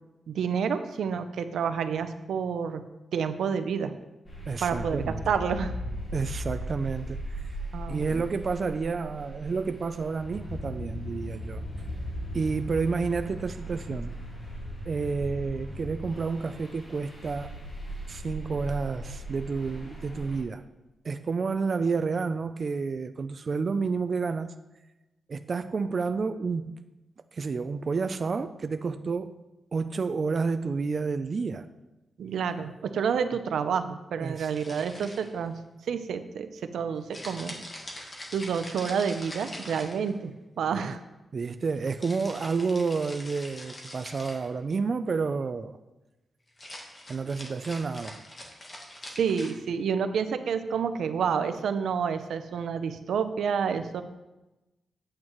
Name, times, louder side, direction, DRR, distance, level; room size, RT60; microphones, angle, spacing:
voice 1, 0.3-2.8 3.1-3.9 4.6-5.7 7.7-8.1 32.2-35.6 35.9-37.6 38.3-40.3 40.6-41.0 49.1-54.0, right 6 dB, 90° right, 10 dB, 0.5 m, -29 dB
sound 1, 4.2-20.4, equal, 40° left, 2.6 m, -38 dB
voice 2, 4.5-5.2 6.1-7.6 7.9-11.9 12.3-14.2 14.9-17.5 18.1-20.6 21.0-24.5 25.3-26.7 27.3-29.4 29.7-31.7 34.2-34.5 40.7-40.9 41.3-45.8 47.1-48.2, right 4 dB, 35° right, 9 dB, 0.3 m, -30 dB
sound 2, 34.5-35.5 37.1-40.3 42.0-44.5 46.5-49.5, left 1 dB, 25° left, 1.3 m, -43 dB
8.7 x 8.5 x 3.1 m, 1.0 s
wide cardioid pair, 165°, 0 cm